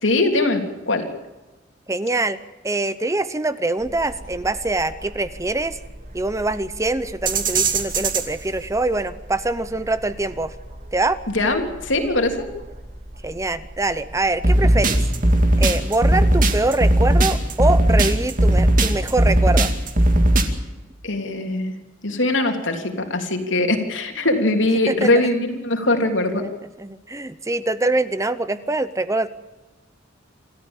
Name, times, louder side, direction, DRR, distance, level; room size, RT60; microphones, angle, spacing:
voice 1, 0.0-1.1 11.3-12.4 21.0-21.8 22.0-26.4, left 2 dB, 75° left, 4 dB, 3.3 m, -21 dB
voice 2, 1.9-2.4 2.6-5.8 6.1-10.5 10.9-11.2 13.2-15.0 15.6-19.7 24.9-25.1 26.4-26.5 26.8-29.3, right 2 dB, 15° right, 14 dB, 0.8 m, -24 dB
sound 1, 3.8-20.4, right 1 dB, 45° right, 2.5 m, -19 dB
27.5 x 14.0 x 8.9 m, 1.1 s
head